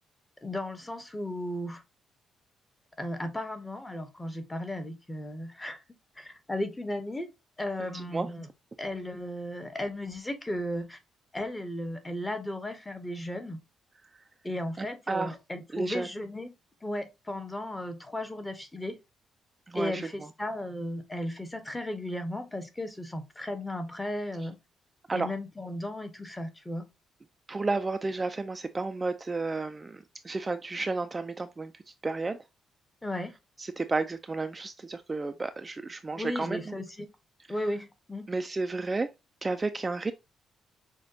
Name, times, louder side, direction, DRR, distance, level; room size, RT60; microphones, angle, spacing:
voice 1, 0.4-1.8 3.0-5.8 6.2-7.3 7.6-8.5 8.8-11.0 11.3-13.6 14.4-16.5 16.8-19.0 19.7-24.6 25.1-26.8 33.0-33.3 36.2-37.1 37.5-38.3, left 1 dB, 15° left, 0.8 m, -35 dB
voice 2, 7.9-8.3 14.8-15.3 15.7-16.1 19.7-20.1 25.1-25.3 27.5-32.4 33.6-36.7 38.3-39.1 39.4-40.1, right 3 dB, 25° right, 0.3 m, -32 dB
6.2 x 2.2 x 2.6 m
cardioid pair, 90°, 0 cm